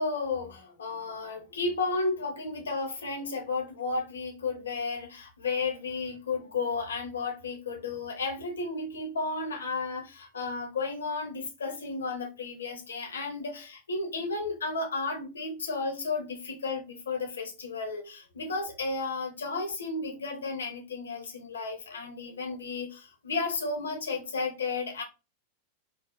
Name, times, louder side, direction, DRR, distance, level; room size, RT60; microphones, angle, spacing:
voice 1, 0.0-25.0, left 3 dB, 70° left, 0.9 m, -33 dB
4.6 x 2.0 x 2.6 m
figure-of-eight pair, 90°, 0 cm